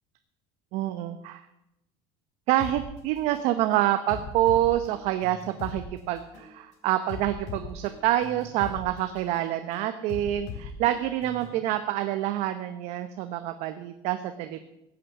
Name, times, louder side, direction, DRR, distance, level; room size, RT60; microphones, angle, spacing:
voice 1, 0.7-1.4 2.5-14.6, right 13 dB, 60° right, 9 dB, 0.9 m, -27 dB
sound 1, 2.6-2.8 3.3-3.5 4.1-5.8 6.3-6.5 7.1-8.8 9.3-9.5 10.1-11.6, left 6 dB, 65° left, 3.9 m, -40 dB
16.0 x 8.9 x 7.2 m, 0.87 s
cardioid pair, 155°, 13 cm